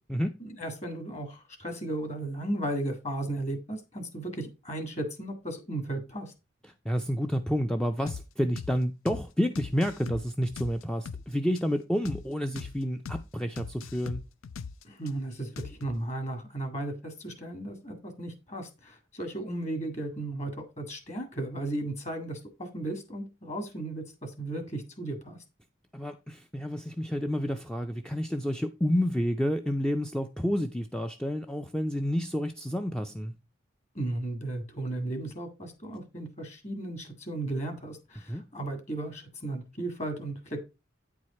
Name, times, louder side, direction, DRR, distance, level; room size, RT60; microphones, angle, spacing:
voice 1, 0.4-6.3 14.8-25.4 34.0-40.6, right 1 dB, 35° left, 1.8 m, -35 dB
voice 2, 6.9-14.2 25.9-33.3 38.3-38.4, equal, 5° left, 0.4 m, -29 dB
sound 1, 8.1-8.2 8.6-8.7 9.1-9.2 9.5-11.2 11.6-11.7 12.0-12.2 12.5-12.7 13.0-13.2 13.6-15.1 15.6-16.0, left 5 dB, 90° left, 0.5 m, -39 dB
9.1 x 4.7 x 4.2 m
head